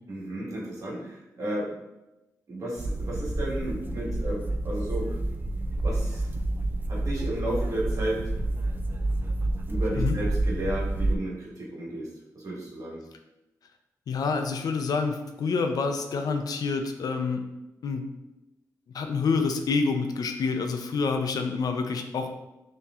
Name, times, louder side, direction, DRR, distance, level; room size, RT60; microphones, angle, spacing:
voice 1, 0.1-1.8 2.5-5.2 5.8-6.3 6.9-8.3 9.7-13.0, right 1 dB, 60° right, -5 dB, 1.4 m, -33 dB
sound 1, 2.8-11.2, right 2 dB, 30° right, 0.4 m, -29 dB
voice 2, 14.1-17.4 17.8-18.1 18.9-22.3, left 4 dB, 75° left, 6 dB, 0.5 m, -27 dB
5.6 x 3.0 x 2.4 m, 0.96 s
wide cardioid pair, 95°, 7 cm